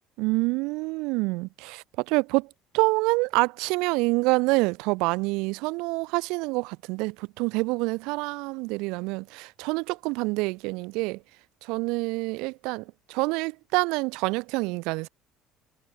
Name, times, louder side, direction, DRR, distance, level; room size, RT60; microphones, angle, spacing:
voice 1, 0.2-11.2 11.6-15.1, right 26 dB, 80° right, 1.0 m, -27 dB
cardioid pair, 175°, 0 cm